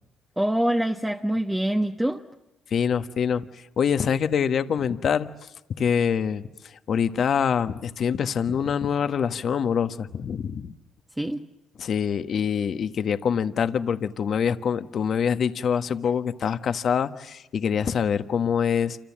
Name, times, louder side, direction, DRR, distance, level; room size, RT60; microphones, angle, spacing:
voice 1, 0.4-2.2 11.2-11.4, right 1 dB, 5° right, 4 dB, 1.2 m, -25 dB
voice 2, 2.7-5.5 5.8-10.7 11.8-19.0, left 7 dB, 55° left, 10 dB, 1.3 m, -25 dB
28.5 x 26.0 x 7.4 m, 0.96 s
cardioid pair, 85°, 0 cm